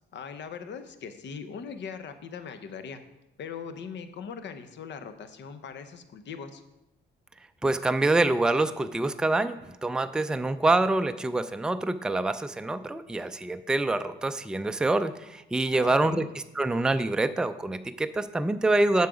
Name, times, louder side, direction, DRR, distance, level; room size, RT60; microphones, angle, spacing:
voice 1, 0.1-3.0 3.4-6.6 15.7-16.3, left 6 dB, 65° left, 9 dB, 0.8 m, -40 dB
voice 2, 7.6-16.2 16.6-19.1, right 2 dB, 5° right, 10 dB, 0.3 m, -26 dB
7.6 x 5.7 x 4.9 m, 0.94 s
cardioid pair, 90°, 20 cm